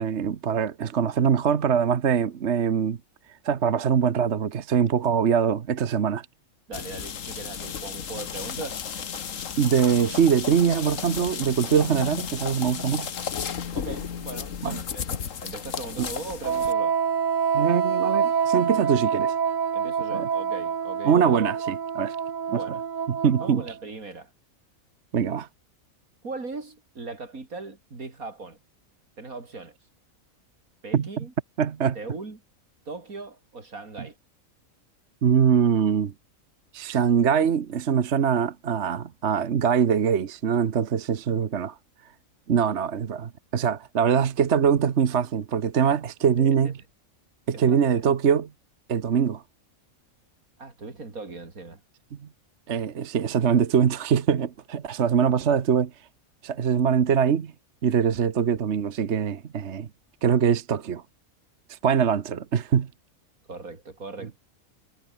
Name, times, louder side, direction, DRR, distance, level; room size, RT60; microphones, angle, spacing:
voice 1, 0.0-3.0 3.4-6.3 9.6-13.1 14.6-14.8 16.0-16.1 17.5-19.4 20.1-20.3 21.0-22.2 22.5-22.6 23.1-23.6 25.1-25.5 30.9-31.2 31.6-32.0 35.2-36.1 36.7-41.8 42.5-46.8 47.5-48.5 48.9-49.4 52.7-55.9 56.4-57.5 57.8-59.9 60.2-61.0 61.7-62.9, right 7 dB, 55° right, 1.3 m, -23 dB
sound 1, 6.7-16.7, left 7 dB, 65° left, 1.6 m, -34 dB
voice 2, 6.7-8.8 13.7-17.0 19.7-21.5 22.5-22.8 23.4-24.3 26.2-28.6 29.2-29.8 30.8-31.3 31.9-32.4 32.9-34.2 46.4-46.7 47.7-48.0 50.6-51.8 63.5-64.4, right 3 dB, 85° right, 4.0 m, -39 dB
Wind instrument woodwind instrument, 16.4-23.8, right 7 dB, 40° right, 0.7 m, -26 dB
omnidirectional pair, 1.4 m